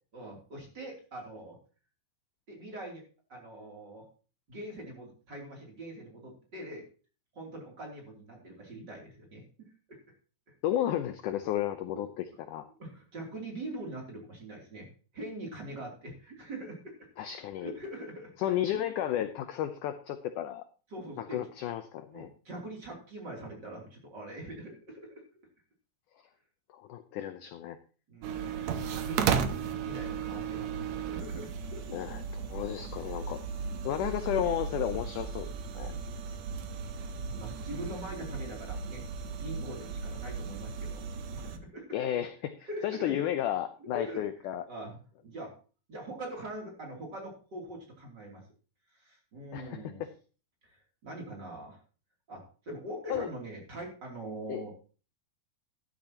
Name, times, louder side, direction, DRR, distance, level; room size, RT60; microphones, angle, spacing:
voice 1, 0.1-1.6 2.5-3.0 3.3-4.1 4.5-6.8 7.3-10.0 11.9-12.1 12.8-14.9 15.1-17.1 17.6-18.9 20.9-21.4 22.1-25.2 28.1-28.4 28.8-32.0 32.5-32.6 33.6-33.9 35.7-36.3 37.0-39.0 39.3-41.0 41.3-42.0 42.6-43.1 43.9-44.2 44.7-45.5 45.9-48.4 48.9-50.0 50.6-51.8 52.3-54.7, right 1 dB, 30° right, -1 dB, 3.1 m, -43 dB
voice 2, 10.6-12.7 17.2-17.7 18.4-20.6 21.2-22.3 26.7-27.8 28.8-29.0 31.9-33.4 33.8-35.5 35.7-35.9 41.9-44.6 49.5-50.1 53.1-53.3 54.5-54.6, left 11 dB, 80° left, 10 dB, 1.8 m, -33 dB
sound 1, 28.2-41.6, right 6 dB, 75° right, 1.7 m, -35 dB
13.0 x 12.0 x 2.9 m, 0.37 s
omnidirectional pair, 4.4 m